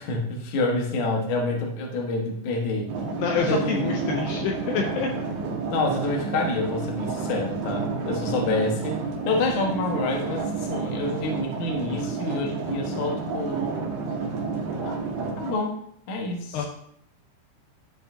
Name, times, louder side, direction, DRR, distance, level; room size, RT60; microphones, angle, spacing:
voice 1, 0.0-2.9 3.5-4.0 5.7-9.0 9.3-13.7 14.8-14.9 15.4-15.8 16.1-16.7, left 2 dB, 65° left, 1 dB, 2.2 m, -27 dB
sound 1, 2.9-15.6, right 4 dB, 75° right, 3.1 m, -30 dB
voice 2, 3.2-5.1 16.5-16.7, left 6 dB, 80° left, 1 dB, 2.5 m, -27 dB
13.5 x 4.9 x 2.7 m, 0.68 s
omnidirectional pair, 5.2 m